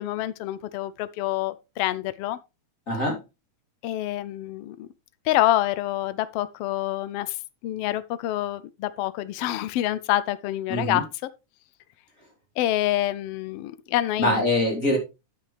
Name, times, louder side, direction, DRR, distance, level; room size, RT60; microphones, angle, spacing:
voice 1, 0.0-2.4 3.8-4.9 5.2-7.4 7.6-11.1 12.6-14.4, left 14 dB, 85° left, 1.3 m, -27 dB
voice 2, 2.9-3.2 10.7-11.0 14.2-15.0, left 1 dB, 25° left, 3.4 m, -23 dB
9.4 x 9.1 x 3.3 m
omnidirectional pair, 3.4 m